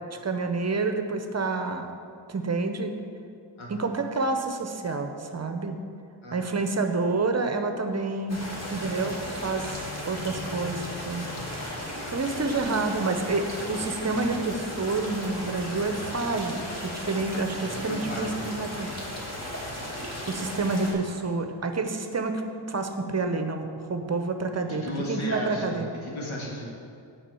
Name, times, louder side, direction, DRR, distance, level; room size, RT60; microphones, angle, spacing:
voice 1, 0.2-1.9 2.3-2.9 3.7-5.8 6.3-8.4 8.7-11.3 12.1-16.5 16.8-18.9 20.3-22.4 22.7-25.9, right 3 dB, 35° right, 6 dB, 0.7 m, -28 dB
sound 1, 8.3-20.9, left 1 dB, 35° left, 2.0 m, -35 dB
voice 2, 17.7-18.4 24.7-26.6, equal, 85° left, -3 dB, 2.1 m, -35 dB
7.4 x 4.8 x 6.9 m, 2.4 s
cardioid pair, 75°, 46 cm